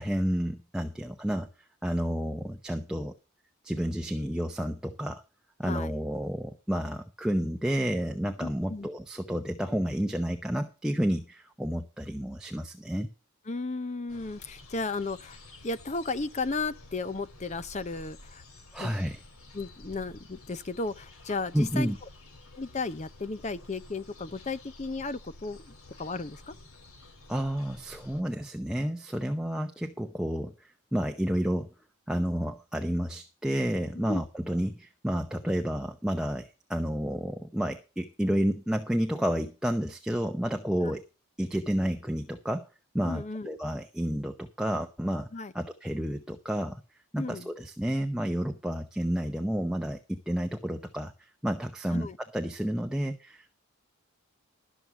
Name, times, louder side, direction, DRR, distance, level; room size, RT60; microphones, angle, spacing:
voice 1, 0.0-1.5 1.8-3.1 3.6-5.2 5.6-13.1 18.7-19.2 21.5-22.0 27.3-31.7 32.1-41.0 41.4-42.7 42.9-45.3 45.5-46.8 47.1-52.1 52.3-53.5, equal, 5° right, 0.7 m, -30 dB
voice 2, 8.4-8.9 13.5-15.4 15.6-18.4 18.8-18.9 19.5-21.9 22.5-25.6 26.0-26.5 34.1-34.2 40.8-40.9 43.1-43.6 45.3-45.5 47.1-47.5 51.9-52.2, left 3 dB, 30° left, 0.6 m, -34 dB
sound 1, 14.1-28.2, left 2 dB, 75° left, 2.6 m, -51 dB
13.0 x 6.3 x 6.9 m
head